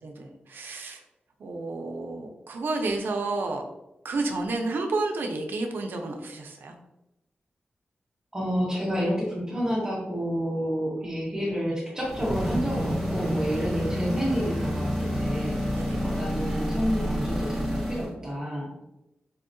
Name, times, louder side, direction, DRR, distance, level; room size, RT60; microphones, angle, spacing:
voice 1, 0.0-1.0 1.4-3.7 4.0-6.7 15.7-16.0, right 3 dB, 90° right, 3 dB, 0.5 m, -31 dB
voice 2, 8.3-15.6 16.0-18.8, equal, 20° right, -5 dB, 0.8 m, -29 dB
sound 1, 12.0-18.1, equal, 5° left, 1.1 m, -29 dB
4.1 x 2.7 x 2.6 m, 0.92 s
wide cardioid pair, 170°, 3 cm